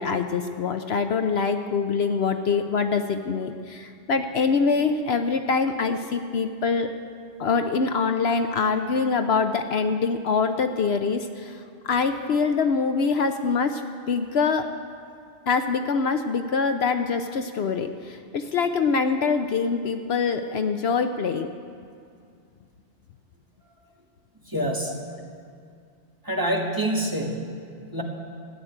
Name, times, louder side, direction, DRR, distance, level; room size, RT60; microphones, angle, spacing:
voice 1, 0.0-6.9 7.4-13.8 14.1-14.7 15.5-21.5, left 5 dB, 65° left, 7 dB, 0.9 m, -24 dB
voice 2, 24.5-24.9 26.2-27.6 27.9-28.0, right 1 dB, 20° right, 0 dB, 1.6 m, -26 dB
14.5 x 7.9 x 10.0 m, 2.3 s
omnidirectional pair, 1.2 m